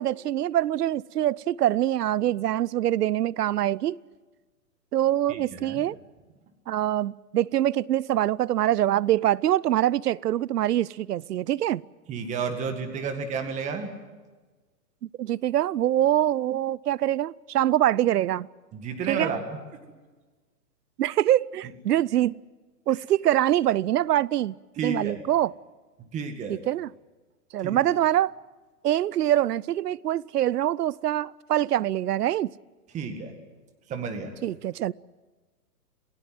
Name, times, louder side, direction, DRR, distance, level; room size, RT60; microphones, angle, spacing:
voice 1, 0.0-4.0 4.9-6.0 6.7-11.8 15.2-18.5 19.1-19.3 21.0-22.4 22.9-24.5 24.8-25.5 26.5-26.9 27.5-28.3 28.8-32.5 34.4-34.9, right 12 dB, 75° right, 0.6 m, -24 dB
voice 2, 5.3-5.8 12.1-13.9 18.7-19.6 24.8-25.2 26.1-26.6 27.6-27.8 32.9-33.3 33.9-34.3, right 5 dB, 15° right, 1.8 m, -31 dB
27.5 x 17.0 x 7.7 m
hypercardioid pair, 150°, 47 cm